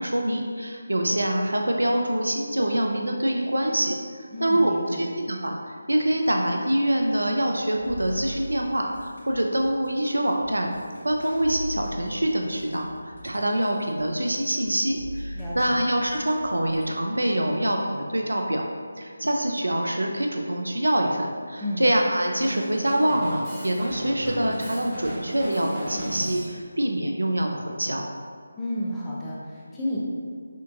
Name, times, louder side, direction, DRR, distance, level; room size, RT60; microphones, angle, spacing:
voice 1, 0.0-10.7 11.0-18.6 19.0-28.1, right 1 dB, 80° right, 2 dB, 0.5 m, -25 dB
voice 2, 4.3-5.1 15.3-15.8 21.6-21.9 28.6-30.0, left 1 dB, 10° left, -8 dB, 0.6 m, -31 dB
sound 1, 7.8-16.9, equal, 75° left, 1.2 m, -40 dB
Drum kit, 22.4-26.6, right 1 dB, 5° right, 1.4 m, -34 dB
6.3 x 2.6 x 2.5 m, 2.1 s
figure-of-eight pair, 160°, 0 cm